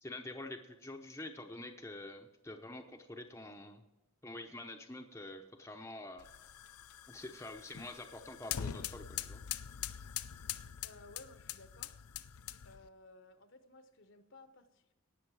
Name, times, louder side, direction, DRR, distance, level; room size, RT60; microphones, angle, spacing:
voice 1, 0.0-3.8 4.2-6.3 7.1-9.4, left 2 dB, 10° left, 3 dB, 0.8 m, -47 dB
sound 1, 6.2-12.9, left 10 dB, 80° left, 0.5 m, -43 dB
voice 2, 10.8-12.0 12.6-14.9, left 2 dB, 55° left, 9 dB, 1.0 m, -57 dB
18.0 x 6.5 x 4.8 m, 1.0 s
head